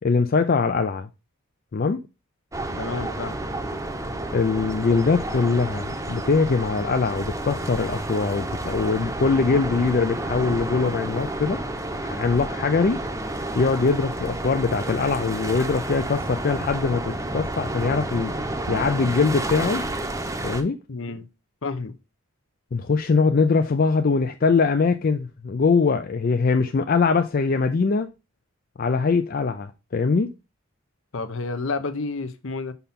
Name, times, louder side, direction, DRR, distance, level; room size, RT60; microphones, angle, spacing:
voice 1, 0.0-1.1 1.7-2.0 4.3-11.6 12.0-13.0 13.5-18.3 18.7-19.8 20.4-20.8 22.7-28.1 28.8-30.3, left 4 dB, 45° left, 0.4 m, -22 dB
sound 1, 2.5-20.6, right 1 dB, 15° right, 0.8 m, -30 dB
voice 2, 2.8-3.4 20.9-21.3 21.6-21.9 31.1-32.7, left 3 dB, 65° left, 0.8 m, -30 dB
5.6 x 5.5 x 4.2 m
head